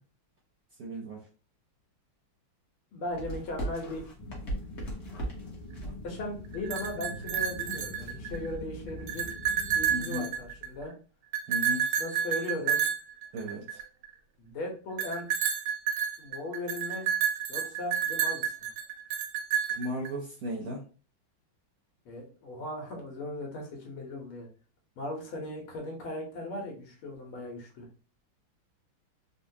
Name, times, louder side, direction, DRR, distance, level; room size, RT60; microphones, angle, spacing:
voice 1, 0.8-1.2 9.9-10.3 11.5-11.9 13.3-13.8 19.8-20.8, equal, 65° right, -2 dB, 0.9 m, -35 dB
voice 2, 2.9-4.0 5.8-9.3 9.8-10.9 12.0-12.8 14.4-15.3 16.2-17.1 17.5-18.5 22.1-24.5 25.0-27.9, left 1 dB, 90° left, 0 dB, 1.9 m, -38 dB
sound 1, 3.1-10.9, right 1 dB, 45° left, 1.1 m, -42 dB
sound 2, 4.2-9.9, left 2 dB, 65° left, 1.8 m, -44 dB
sound 3, 6.5-8.5 8.9-10.8 11.3-14.1 15.0-20.1, right 8 dB, 80° right, 1.4 m, -30 dB
4.1 x 2.2 x 2.7 m, 0.37 s
omnidirectional pair, 2.3 m